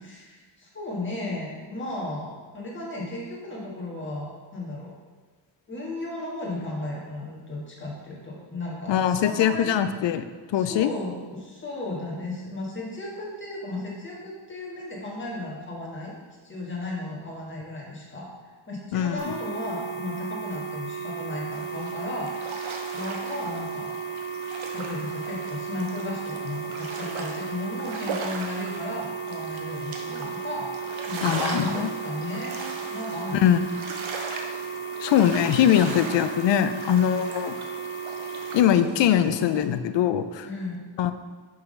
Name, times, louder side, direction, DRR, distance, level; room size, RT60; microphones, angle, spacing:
voice 1, 0.0-4.9 5.7-9.7 10.5-16.2 16.4-18.3 18.7-23.9 24.7-30.7 31.1-33.4 40.4-40.9, left 2 dB, 25° left, -4 dB, 1.5 m, -35 dB
voice 2, 8.9-10.9 18.9-19.4 31.2-31.9 33.3-33.6 34.3-34.5 35.0-37.6 38.5-40.5 41.0-41.1, left 10 dB, 70° left, 11 dB, 0.5 m, -22 dB
sound 1, 19.2-38.6, right 5 dB, 50° left, 1.3 m, -35 dB
sound 2, 21.5-39.7, right 4 dB, 80° right, 0.9 m, -38 dB
5.6 x 3.9 x 5.2 m, 1.4 s
wide cardioid pair, 140°, 46 cm